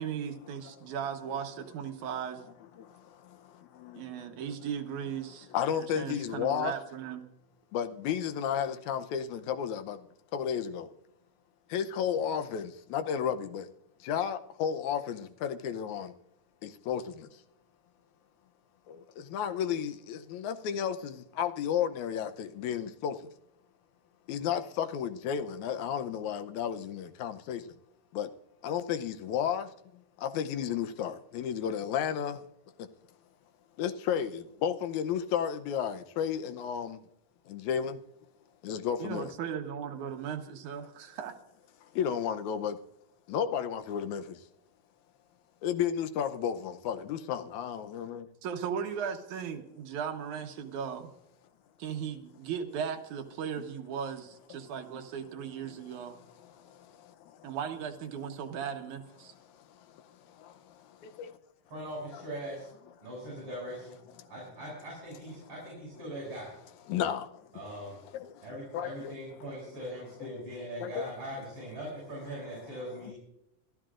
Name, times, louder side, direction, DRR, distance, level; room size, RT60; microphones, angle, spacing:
voice 1, 0.0-2.4 3.9-5.5 5.8-7.2 39.0-41.4 48.4-51.1 51.8-56.2 57.4-59.3, right 7 dB, 70° right, 2.5 m, -37 dB
voice 2, 2.8-4.3 5.5-6.7 7.7-10.1 10.3-10.9 11.7-13.7 14.0-16.1 16.6-17.3 18.9-23.3 24.3-27.7 28.1-28.3 28.6-29.7 30.2-32.4 32.8-32.9 33.8-37.0 37.5-38.0 38.6-39.3 41.9-42.8 43.3-44.4 45.6-48.3 56.4-57.5 59.7-61.4 62.1-62.2 64.2-64.3 65.4-65.5 66.9-67.7 68.1-68.5 68.7-69.1 70.8-71.1 72.4-72.5, left 8 dB, 75° left, 2.0 m, -33 dB
voice 3, 61.7-62.7 63.0-64.0 64.3-66.5 67.5-67.9 68.4-73.2, equal, 50° right, 8.2 m, -41 dB
26.5 x 12.5 x 2.5 m
omnidirectional pair, 3.6 m